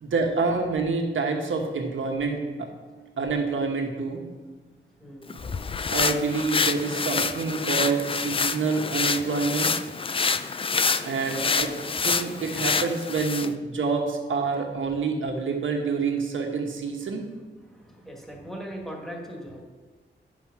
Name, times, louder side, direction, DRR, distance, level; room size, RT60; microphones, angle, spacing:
voice 1, 0.0-2.7 3.2-4.2 5.9-9.7 11.0-11.7 12.0-17.2, right 4 dB, 90° right, 2 dB, 1.4 m, -27 dB
voice 2, 5.0-5.3 11.3-11.5 17.6-19.6, equal, ahead, 0 dB, 1.6 m, -39 dB
sound 1, 5.3-13.5, left 5 dB, 30° left, 0.3 m, -27 dB
9.9 x 5.6 x 6.0 m, 1.4 s
wide cardioid pair, 150°, 20 cm